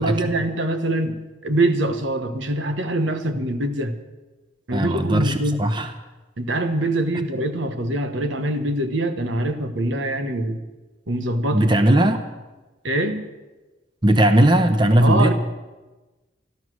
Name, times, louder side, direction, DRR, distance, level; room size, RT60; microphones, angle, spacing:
voice 1, 0.0-4.0 4.7-5.6 6.4-10.6 11.1-11.7 12.8-13.3 15.0-15.3, right 1 dB, 80° right, 8 dB, 1.2 m, -24 dB
voice 2, 4.7-5.9 11.5-12.2 14.0-15.3, right 1 dB, 25° right, 8 dB, 0.8 m, -18 dB
13.0 x 13.0 x 6.3 m, 1.2 s
head